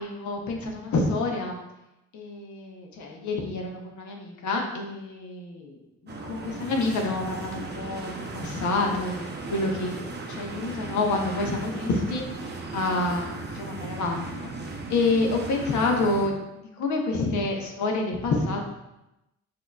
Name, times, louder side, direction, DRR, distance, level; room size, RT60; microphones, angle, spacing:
voice 1, 0.0-1.6 2.1-5.8 6.0-14.5 14.9-18.6, left 3 dB, 70° left, 1 dB, 0.9 m, -28 dB
sound 1, 6.1-16.3, right 3 dB, 35° right, 0.7 m, -37 dB
6.2 x 2.8 x 2.4 m, 0.93 s
cardioid pair, 90°, 30 cm